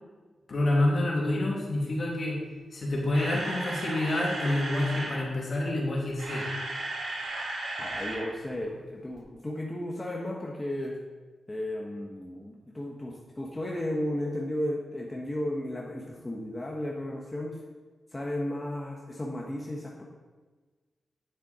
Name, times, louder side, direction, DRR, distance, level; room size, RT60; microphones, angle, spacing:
voice 1, 0.5-2.4 2.7-6.5, left 1 dB, 50° left, -3 dB, 2.5 m, -27 dB
Camera, 2.8-5.2 6.0-8.3 8.5-8.7 9.2-9.3, right 2 dB, 70° right, 1.9 m, -35 dB
voice 2, 7.7-11.0 11.5-17.6 18.1-20.0, left 1 dB, 20° left, -2 dB, 1.1 m, -34 dB
9.3 x 6.9 x 4.2 m, 1.3 s
wide cardioid pair, 100°, 0 cm